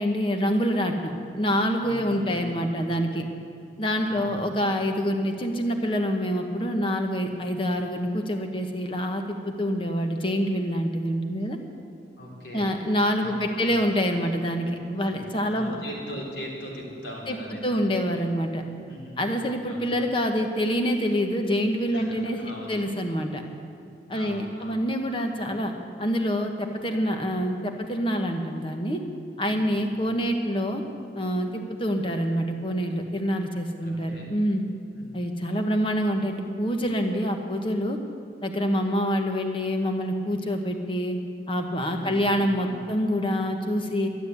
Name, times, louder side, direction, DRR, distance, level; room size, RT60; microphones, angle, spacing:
voice 1, 0.0-3.3 3.8-11.6 12.5-15.8 17.3-17.4 17.6-18.6 19.2-22.4 22.7-23.4 24.1-25.7 26.0-29.0 29.4-30.8 31.1-34.6 35.1-38.0 38.4-41.2 41.5-44.1, equal, 30° left, 4 dB, 1.2 m, -26 dB
voice 2, 1.8-3.0 4.1-4.4 12.2-12.7 13.2-13.8 15.3-17.8 18.9-20.1 21.9-22.8 24.1-24.8 29.7-30.2 33.8-34.3 34.9-35.4 41.9-42.9, equal, 80° left, -3 dB, 3.7 m, -41 dB
12.5 x 11.0 x 8.3 m, 2.7 s
head